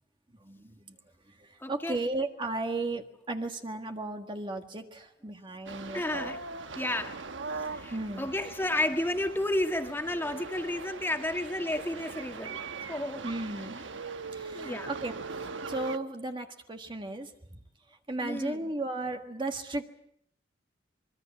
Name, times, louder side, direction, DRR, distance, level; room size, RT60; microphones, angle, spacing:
voice 1, 0.3-1.0 1.2-6.3 7.9-8.3 13.2-17.6 18.1-19.9, right 2 dB, 25° right, 5 dB, 1.6 m, -36 dB
voice 2, 1.6-2.0 5.9-6.4 6.8-7.2 7.6-12.6 12.9-13.2 14.5-14.9 18.2-18.7, left 1 dB, 10° left, 5 dB, 1.9 m, -32 dB
sound 1, 5.7-16.0, right 4 dB, 80° right, 1.2 m, -41 dB
25.0 x 22.5 x 7.3 m, 0.70 s
head